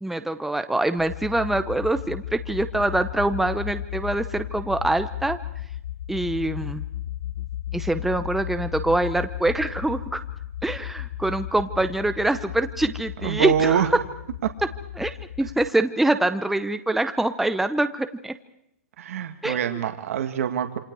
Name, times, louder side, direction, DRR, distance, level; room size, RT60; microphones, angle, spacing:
voice 1, 0.0-5.4 6.1-6.8 7.7-10.2 10.6-13.9 15.0-18.3 19.4-19.8, right 2 dB, ahead, 9 dB, 0.9 m, -25 dB
sound 1, 1.0-15.7, left 12 dB, 60° left, 1.0 m, -35 dB
voice 2, 13.2-13.9 19.0-20.8, right 9 dB, 65° right, 6 dB, 2.1 m, -24 dB
27.5 x 25.0 x 4.8 m, 0.78 s
hypercardioid pair, 140°, 8 cm